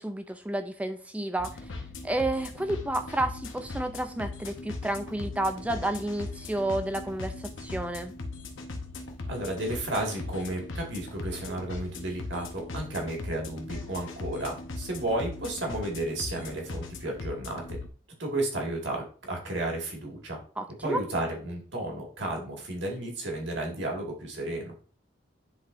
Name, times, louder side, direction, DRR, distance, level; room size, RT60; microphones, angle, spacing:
voice 1, 0.0-1.6 2.0-8.2 20.6-21.0, right 1 dB, 5° right, 8 dB, 0.3 m, -31 dB
sound 1, 1.4-17.9, left 3 dB, 75° left, 0.9 m, -39 dB
voice 2, 9.3-17.8 18.2-20.4 20.8-24.7, right 1 dB, 60° right, 0 dB, 1.9 m, -33 dB
10.0 x 3.8 x 2.6 m, 0.39 s
head